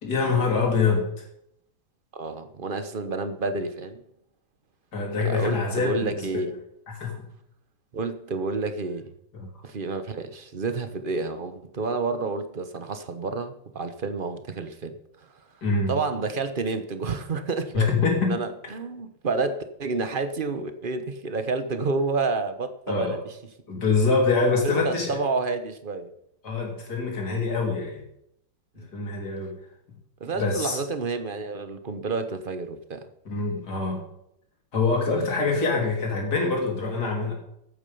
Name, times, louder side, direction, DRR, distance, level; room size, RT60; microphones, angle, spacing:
voice 1, 0.0-1.1 4.9-6.3 6.9-7.2 9.3-9.5 15.6-16.0 17.7-18.4 22.9-23.2 23.7-25.2 26.4-28.0 28.9-29.6 30.4-30.8 33.3-34.0 34.7-37.3, left 4 dB, 55° left, 0 dB, 3.7 m, -25 dB
voice 2, 2.1-4.0 5.2-6.5 7.9-9.1 9.6-15.3 15.9-23.2 24.6-26.1 28.8-28.9 30.2-33.1 35.1-35.3, right 3 dB, 35° right, 9 dB, 0.9 m, -30 dB
14.5 x 8.7 x 5.5 m, 0.76 s
omnidirectional pair, 2.1 m